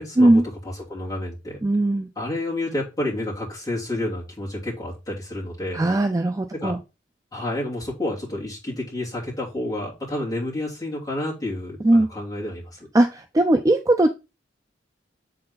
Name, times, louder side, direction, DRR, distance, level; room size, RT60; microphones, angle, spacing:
voice 1, 0.0-1.6 2.1-5.9 6.5-6.8 7.3-12.9, left 1 dB, 20° left, -6 dB, 2.9 m, -30 dB
voice 2, 1.6-2.1 5.7-6.8 11.8-12.1 12.9-14.1, right 1 dB, 20° right, 6 dB, 0.4 m, -18 dB
7.6 x 4.0 x 4.0 m, 0.29 s
head